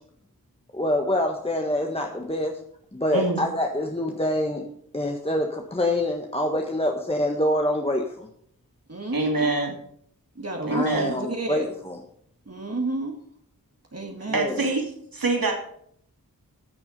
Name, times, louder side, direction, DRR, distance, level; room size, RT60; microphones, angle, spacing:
voice 1, 0.7-2.6 2.9-4.6 4.9-8.3 10.7-12.0 14.3-14.6, left 1 dB, 15° left, 2 dB, 1.5 m, -26 dB
voice 2, 3.1-3.5 9.1-9.8 10.7-11.1 14.3-15.5, right 2 dB, 70° right, 2 dB, 2.9 m, -25 dB
voice 3, 8.9-9.4 10.4-11.7 12.5-13.2 13.9-14.7, right 2 dB, 45° right, 1 dB, 1.9 m, -31 dB
13.5 x 7.0 x 5.4 m, 0.67 s
wide cardioid pair, 45°, 36 cm